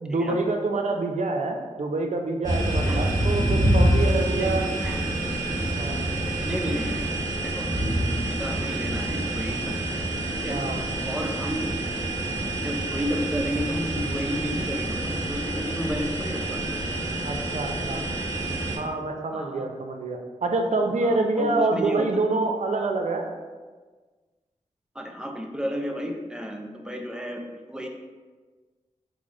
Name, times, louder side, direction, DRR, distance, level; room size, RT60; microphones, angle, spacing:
voice 1, 0.0-4.6 5.8-6.0 10.5-10.8 17.2-18.0 18.8-23.3, right 3 dB, 60° right, 3 dB, 0.5 m, -26 dB
sound 1, 2.4-18.8, right 1 dB, 30° right, 1.2 m, -27 dB
voice 2, 6.5-7.1 7.4-7.7 8.3-9.7 10.4-10.6 11.0-11.7 12.6-16.6 19.3-19.7 21.0-22.1 24.9-27.9, equal, 5° right, 2 dB, 0.5 m, -32 dB
4.8 x 2.0 x 3.7 m, 1.4 s
cardioid pair, 50°, 13 cm